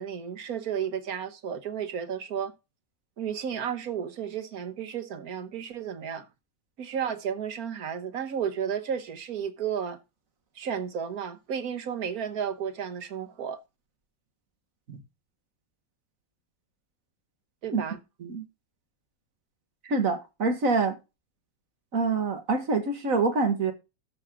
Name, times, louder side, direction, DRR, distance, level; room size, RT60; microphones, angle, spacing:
voice 1, 0.0-2.5 3.2-6.3 6.8-10.0 10.5-13.6 17.6-18.0, right 8 dB, 85° right, 1.6 m, -33 dB
voice 2, 19.8-20.9 21.9-23.7, right 4 dB, 65° right, 2.0 m, -26 dB
13.0 x 6.3 x 3.7 m
omnidirectional pair, 1.5 m